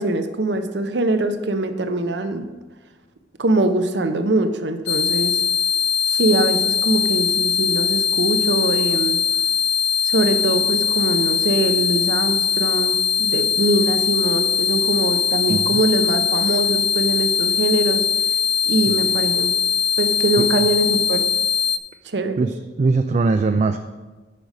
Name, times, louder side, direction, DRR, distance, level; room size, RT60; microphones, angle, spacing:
voice 1, 0.0-2.5 3.4-5.4 6.1-9.2 10.0-18.0 18.6-19.5 20.0-21.3 22.0-22.4, right 2 dB, 75° right, 8 dB, 0.8 m, -22 dB
sound 1, 4.9-21.8, left 7 dB, 70° left, 0.5 m, -21 dB
voice 2, 15.5-15.8 18.9-19.2 20.4-20.7 22.4-23.8, right 3 dB, 40° right, 7 dB, 0.3 m, -21 dB
8.5 x 5.3 x 6.5 m, 1.2 s
head